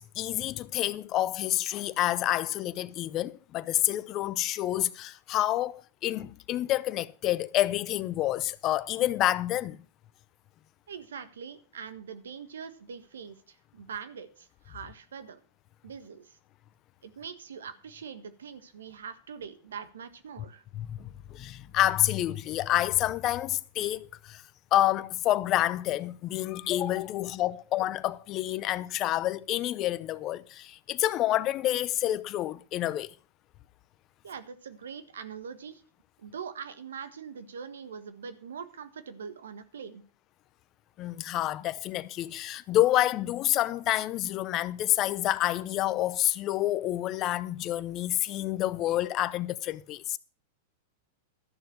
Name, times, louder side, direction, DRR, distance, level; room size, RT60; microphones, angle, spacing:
voice 1, 0.0-9.8 20.7-24.4 24.7-33.1 41.0-50.2, left 14 dB, 40° left, 0.7 m, -28 dB
voice 2, 10.9-15.4 15.8-16.4 17.0-20.6 34.2-35.8 36.2-40.0, right 6 dB, 80° right, 1.5 m, -43 dB
13.0 x 6.9 x 6.4 m
hypercardioid pair, 110°, 0 cm